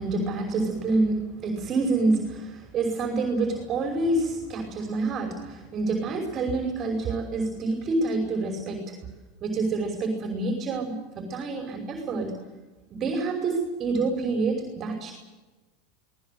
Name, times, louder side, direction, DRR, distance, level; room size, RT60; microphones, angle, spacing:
voice 1, 0.0-8.9 9.4-12.4 12.9-15.1, right 3 dB, 40° right, 3 dB, 5.7 m, -27 dB
24.5 x 19.5 x 8.1 m, 1.2 s
hypercardioid pair, 100°, 0 cm